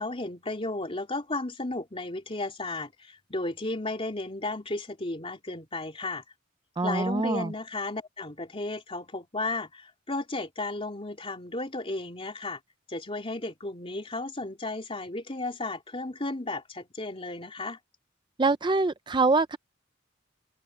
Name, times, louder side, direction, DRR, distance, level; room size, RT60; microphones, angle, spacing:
voice 1, 0.0-6.2 6.8-12.6 12.9-17.8, left 2 dB, 30° left, 3.2 m, -34 dB
voice 2, 6.8-7.5 18.4-19.6, right 3 dB, 25° right, 0.5 m, -24 dB
open air
head